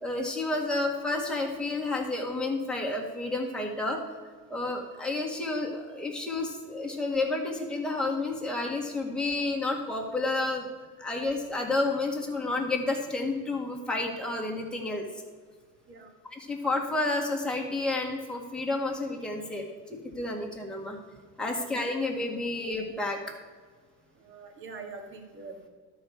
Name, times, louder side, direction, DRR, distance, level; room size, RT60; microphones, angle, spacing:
voice 1, 0.0-4.0 4.5-10.7 11.0-15.1 16.3-21.0 21.4-23.2, left 2 dB, ahead, -2 dB, 1.8 m, -30 dB
voice 2, 24.2-25.7, right 4 dB, 35° right, 4 dB, 1.9 m, -44 dB
12.0 x 4.8 x 7.0 m, 1.5 s
cardioid pair, 130°, 34 cm